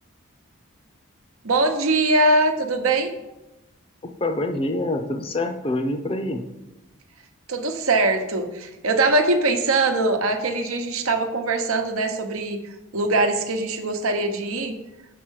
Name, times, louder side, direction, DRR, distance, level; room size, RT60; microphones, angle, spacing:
voice 1, 1.4-3.1 7.5-12.6 12.9-14.7, right 2 dB, 85° right, 5 dB, 0.9 m, -22 dB
voice 2, 4.2-6.5, left 2 dB, 25° left, 5 dB, 0.5 m, -26 dB
6.4 x 4.7 x 6.3 m, 0.99 s
head